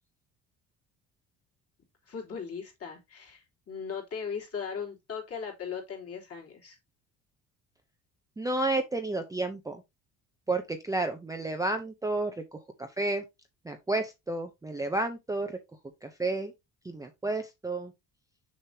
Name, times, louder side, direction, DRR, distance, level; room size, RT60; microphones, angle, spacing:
voice 1, 2.1-6.8, left 6 dB, 40° left, 3.2 m, -38 dB
voice 2, 8.4-9.8 10.5-12.6 13.0-13.2 13.7-15.6 16.0-16.5 16.8-17.9, right 2 dB, 10° right, 0.7 m, -31 dB
6.6 x 6.4 x 2.8 m
cardioid pair, 135°, 37 cm